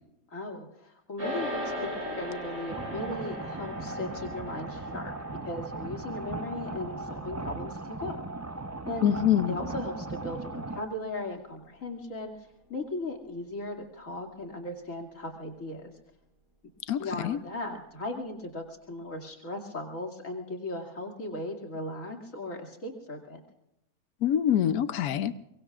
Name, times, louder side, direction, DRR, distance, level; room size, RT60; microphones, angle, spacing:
voice 1, 0.3-5.1 5.4-8.2 8.9-9.1 9.5-12.3 12.7-15.9 17.0-23.4, left 1 dB, 60° left, 2 dB, 2.9 m, -37 dB
sound 1, 1.2-10.7, equal, 90° right, 8.2 m, -40 dB
sound 2, 2.7-10.8, right 2 dB, 25° right, 0.3 m, -38 dB
voice 2, 9.0-9.6 16.9-17.4 24.2-25.3, left 10 dB, 90° left, 12 dB, 1.2 m, -25 dB
23.5 x 23.5 x 2.5 m, 0.85 s
omnidirectional pair, 1.5 m